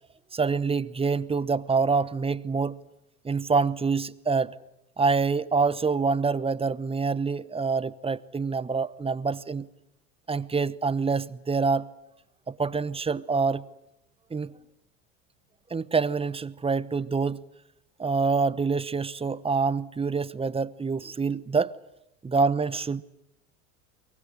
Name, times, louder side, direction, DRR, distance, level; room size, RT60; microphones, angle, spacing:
voice 1, 0.3-2.8 3.2-4.5 5.0-9.7 10.3-11.9 12.5-13.7 14.3-14.6 15.7-17.4 18.0-21.7 22.2-23.0, right 4 dB, 15° right, 0.9 m, -26 dB
23.5 x 23.0 x 9.9 m
hypercardioid pair, 90°, 43 cm